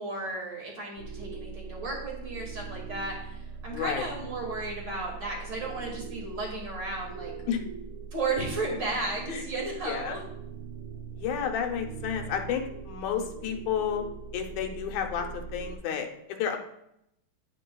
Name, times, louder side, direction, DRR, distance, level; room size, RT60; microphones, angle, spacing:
voice 1, 0.0-7.3 8.1-10.2, right 2 dB, 40° right, -2 dB, 2.4 m, -34 dB
sound 1, 1.0-15.8, right 5 dB, 80° right, 1.9 m, -41 dB
voice 2, 3.7-4.1 7.5-7.6 9.3-9.4 9.9-10.2 11.1-14.0 14.3-16.6, left 8 dB, 80° left, 4 dB, 2.2 m, -31 dB
11.0 x 8.1 x 2.3 m, 0.79 s
omnidirectional pair, 3.4 m